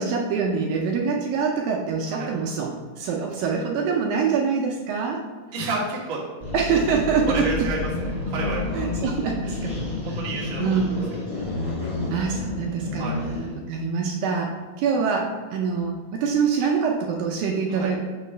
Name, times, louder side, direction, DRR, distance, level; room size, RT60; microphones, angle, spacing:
voice 1, 0.0-5.2 6.5-7.7 8.7-9.7 10.1-10.2 10.6-11.0 12.1-13.1 13.6-18.0, right 5 dB, 80° right, 0 dB, 2.2 m, -25 dB
voice 2, 5.5-6.2 7.3-7.8 8.3-9.1 10.0-10.6 13.0-13.2 17.7-17.9, right 3 dB, 55° right, -6 dB, 1.3 m, -30 dB
sound 1, 6.4-13.6, left 2 dB, 35° left, 0.5 m, -30 dB
6.5 x 3.0 x 5.5 m, 1.4 s
omnidirectional pair, 4.4 m